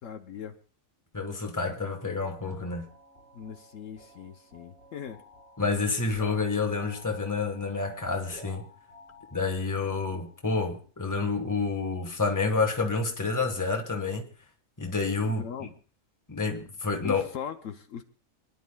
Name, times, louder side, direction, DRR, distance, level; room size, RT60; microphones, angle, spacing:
voice 1, 0.0-0.5 3.3-5.2 15.3-15.7 17.0-18.0, left 8 dB, 70° left, 1.1 m, -39 dB
voice 2, 1.1-2.9 5.6-8.7 9.3-14.3 14.8-15.4 16.3-17.2, left 4 dB, 15° left, 1.3 m, -29 dB
sound 1, 1.8-10.5, left 1 dB, 50° right, 5.5 m, -53 dB
28.0 x 10.5 x 2.3 m
omnidirectional pair, 1.4 m